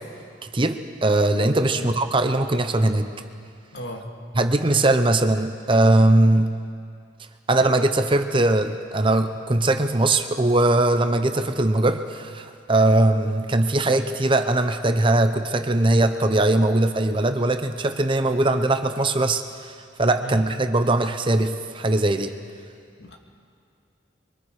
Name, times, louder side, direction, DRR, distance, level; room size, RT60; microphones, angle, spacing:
voice 1, 0.5-3.1 4.3-6.5 7.5-22.3, right 2 dB, 30° right, 8 dB, 0.8 m, -20 dB
voice 2, 3.7-4.0 20.2-20.4 23.0-23.2, equal, 65° left, 2 dB, 2.1 m, -35 dB
26.5 x 23.5 x 5.0 m, 2.3 s
head